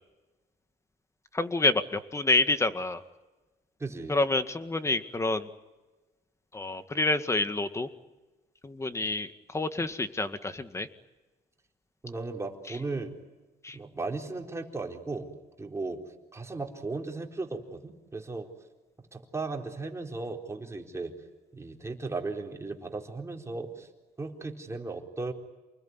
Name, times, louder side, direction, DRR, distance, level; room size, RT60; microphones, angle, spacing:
voice 1, 1.3-3.0 4.1-5.5 6.5-7.9 8.6-10.9 13.6-13.8, left 2 dB, 15° left, 10 dB, 1.9 m, -28 dB
voice 2, 3.8-4.2 12.0-13.1 13.7-15.3 15.6-16.0 16.3-18.5 19.1-21.1 21.5-23.9 24.2-25.3, right 3 dB, 15° right, 2 dB, 4.2 m, -36 dB
29.0 x 21.0 x 9.8 m, 1.2 s
cardioid pair, 110°, 17 cm